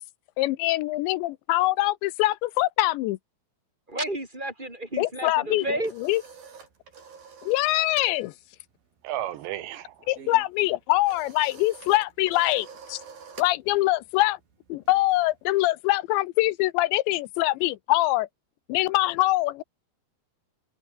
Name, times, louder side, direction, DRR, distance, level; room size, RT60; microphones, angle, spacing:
voice 1, 0.4-3.2 5.0-6.2 7.5-8.3 10.1-13.0 13.4-14.4 14.7-18.3 18.7-19.6, left 18 dB, 90° left, 3.0 m, -24 dB
voice 2, 3.9-5.9, right 1 dB, 10° right, 5.0 m, -31 dB
sound 1, 5.5-8.2 8.4-8.7 9.0-15.7, right 6 dB, 55° right, 6.1 m, -48 dB
voice 3, 9.0-10.1, right 13 dB, 75° right, 3.4 m, -33 dB
open air
omnidirectional pair, 5.2 m